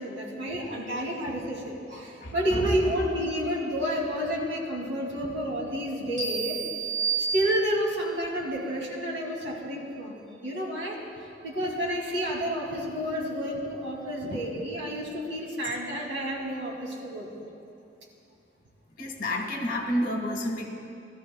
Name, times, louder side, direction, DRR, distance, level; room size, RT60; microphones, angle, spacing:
voice 1, 0.0-6.6 7.2-11.0 11.4-17.3, equal, 85° right, -3 dB, 2.9 m, -30 dB
voice 2, 2.2-2.7 14.3-14.5 15.6-15.8 19.0-20.7, left 1 dB, 45° left, 1 dB, 1.7 m, -30 dB
sound 1, 6.2-8.0, right 5 dB, 40° right, 2.0 m, -30 dB
19.5 x 13.5 x 2.4 m, 2.5 s
head